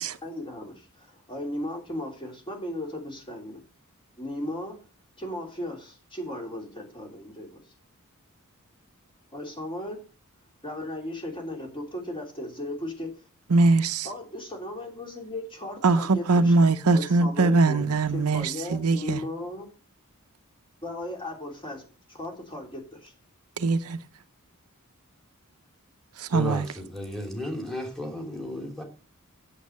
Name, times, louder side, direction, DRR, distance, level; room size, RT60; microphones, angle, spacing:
voice 1, 0.2-3.6 4.2-4.8 5.2-7.6 9.3-10.0 10.6-13.1 14.0-17.8 18.1-19.7 20.8-21.8 22.1-23.1, left 1 dB, 25° left, 3.3 m, -36 dB
voice 2, 13.5-14.1 15.8-19.2 23.6-24.0 26.2-26.7, right 3 dB, 90° right, 0.7 m, -22 dB
voice 3, 26.3-28.8, left 1 dB, ahead, 2.9 m, -33 dB
8.4 x 7.5 x 6.4 m
head